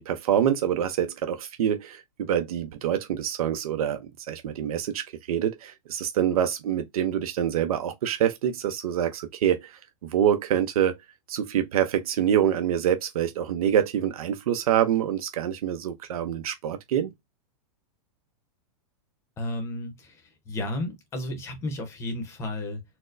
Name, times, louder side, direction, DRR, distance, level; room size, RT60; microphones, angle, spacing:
voice 1, 0.0-4.0 4.3-9.8 10.1-10.9 11.3-17.1, right 10 dB, 75° right, 0.6 m, -26 dB
voice 2, 19.4-20.1 20.5-22.8, left 1 dB, 15° left, 0.7 m, -32 dB
4.3 x 2.1 x 2.5 m
supercardioid pair, 170°, 19 cm